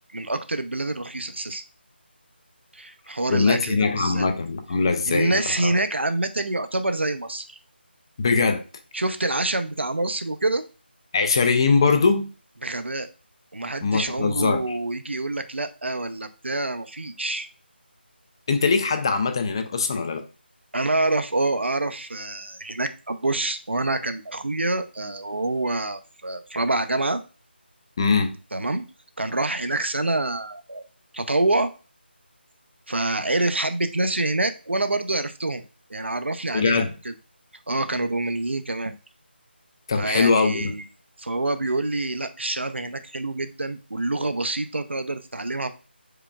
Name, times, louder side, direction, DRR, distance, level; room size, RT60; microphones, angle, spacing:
voice 1, 0.1-1.6 2.7-4.3 5.1-7.6 8.9-10.6 12.6-13.1 13.5-17.5 20.7-27.2 28.5-28.8 29.2-30.8 31.1-31.7 32.9-35.6 35.9-37.1 37.7-38.9 39.9-40.8 41.2-45.7, right 2 dB, 85° right, 0.7 m, -26 dB
voice 2, 3.3-5.7 8.2-8.6 11.1-12.3 13.8-14.6 18.5-20.3 28.0-28.4 36.5-36.9 39.9-40.7, left 4 dB, 25° left, 0.4 m, -21 dB
4.9 x 4.6 x 2.3 m
figure-of-eight pair, 165°, 6 cm